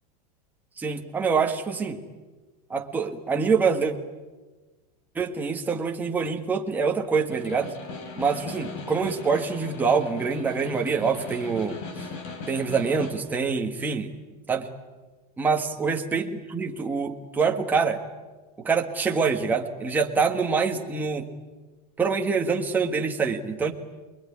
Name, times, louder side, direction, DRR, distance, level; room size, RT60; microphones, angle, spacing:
voice 1, 0.8-2.0 2.7-3.9 5.1-7.7 8.2-11.8 12.5-14.1 14.5-14.7 15.4-18.0 18.6-21.3 22.0-23.7, right 5 dB, 10° right, 2 dB, 1.5 m, -25 dB
Snare drum, 7.1-13.3, left 3 dB, 50° left, 3.9 m, -39 dB
27.5 x 21.5 x 9.9 m, 1.3 s
supercardioid pair, 175°, 21 cm